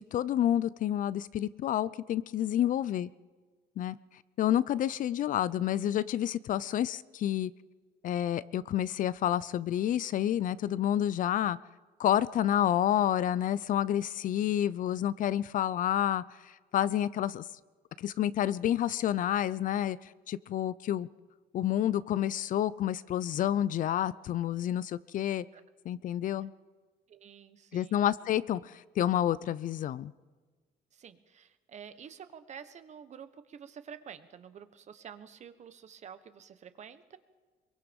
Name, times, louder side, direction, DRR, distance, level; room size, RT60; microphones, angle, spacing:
voice 1, 0.1-3.1 3.8-4.0 4.4-7.5 8.0-11.6 12.0-16.2 16.7-17.4 18.0-20.0 20.3-21.1 21.5-25.4 25.9-26.5 27.7-30.1, left 11 dB, 55° left, 18 dB, 0.5 m, -29 dB
voice 2, 27.1-28.0 30.9-37.2, right 8 dB, 45° right, 11 dB, 1.3 m, -49 dB
23.0 x 22.5 x 5.3 m, 1.4 s
cardioid pair, 130°, 16 cm